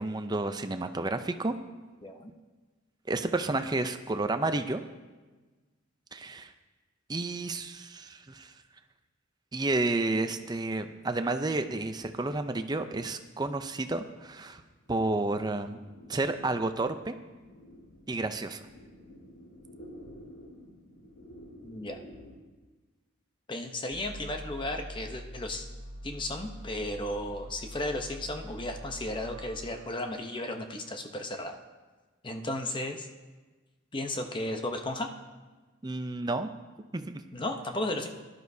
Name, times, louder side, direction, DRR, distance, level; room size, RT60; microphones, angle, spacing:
voice 1, 0.0-1.5 3.1-4.8 6.1-6.5 7.1-8.5 9.5-14.6 14.9-15.8 16.1-17.2 18.1-18.6 35.8-36.5 36.9-37.2, right 2 dB, 20° right, 8 dB, 0.5 m, -31 dB
sound 1, 13.3-22.3, equal, 90° left, 4.6 m, -53 dB
voice 2, 21.6-22.0 23.5-25.7 26.0-31.6 32.2-33.1 33.9-35.1 37.3-38.1, left 1 dB, 25° left, 5 dB, 0.8 m, -34 dB
sound 2, 23.9-30.9, equal, 75° right, 1.3 m, -45 dB
17.5 x 11.5 x 2.7 m, 1.3 s
head